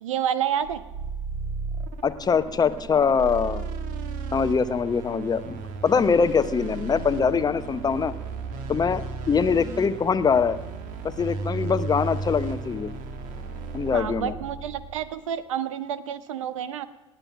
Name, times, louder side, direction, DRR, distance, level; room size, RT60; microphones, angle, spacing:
voice 1, 0.0-0.8 13.9-16.9, right 9 dB, 70° right, 16 dB, 0.6 m, -29 dB
sound 1, 0.6-15.2, right 4 dB, 50° right, 1.6 m, -34 dB
voice 2, 2.0-3.6 4.3-8.1 8.7-10.6 11.0-12.9 13.7-14.3, left 6 dB, 25° left, 13 dB, 0.8 m, -23 dB
19.0 x 9.0 x 7.2 m, 1.1 s
figure-of-eight pair, 65°, 17 cm